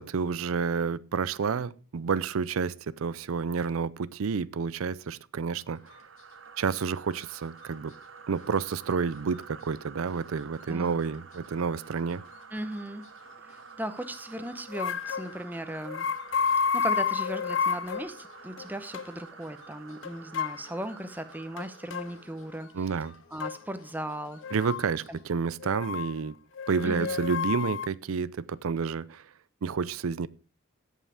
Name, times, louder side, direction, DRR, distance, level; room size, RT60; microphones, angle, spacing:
voice 1, 0.0-6.0 6.6-7.9 8.3-12.2 22.7-23.1 24.5-26.3 26.7-29.2 29.6-30.3, right 5 dB, 85° right, 0.5 m, -30 dB
sound 1, 5.6-22.7, right 5 dB, 65° right, 1.0 m, -49 dB
sound 2, 5.7-25.5, left 3 dB, 80° left, 2.5 m, -58 dB
voice 2, 10.7-11.0 12.5-13.0 13.4-16.1 16.6-23.0 23.3-24.4 25.1-25.2 26.8-27.2, right 1 dB, 10° right, 0.8 m, -37 dB
sound 3, 14.7-15.3 15.8-18.1 18.6-18.7 18.9-19.1 20.0-20.6 21.6-22.1 23.4-23.6 24.4-24.8 25.6-26.1 26.6-27.9, left 6 dB, 65° left, 0.4 m, -30 dB
16.5 x 5.6 x 4.9 m
head